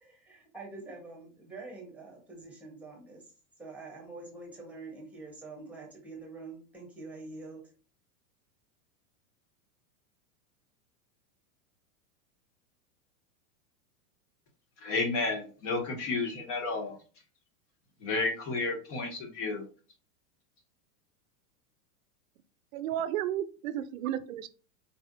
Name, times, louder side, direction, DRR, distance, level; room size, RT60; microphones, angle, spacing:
voice 1, 0.0-3.3 3.6-7.6, right 3 dB, 5° right, 1.0 m, -46 dB
voice 2, 14.8-17.0 18.0-19.6, left 3 dB, 55° left, 1.8 m, -31 dB
voice 3, 22.7-24.5, right 11 dB, 65° right, 0.5 m, -33 dB
4.5 x 3.3 x 2.6 m
supercardioid pair, 160°, 44 cm